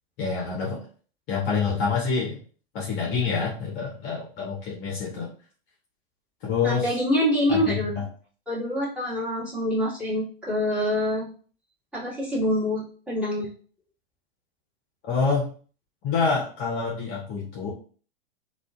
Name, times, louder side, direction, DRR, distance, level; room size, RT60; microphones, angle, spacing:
voice 1, 0.2-0.9 1.3-2.4 2.7-5.3 6.4-7.0 7.5-8.1 15.0-15.5 16.0-17.7, left 5 dB, 35° left, -4 dB, 0.8 m, -27 dB
voice 2, 6.6-7.9 8.5-11.3 11.9-13.5, left 1 dB, 5° right, -9 dB, 1.4 m, -25 dB
2.5 x 2.3 x 2.2 m, 0.42 s
figure-of-eight pair, 100°, 29 cm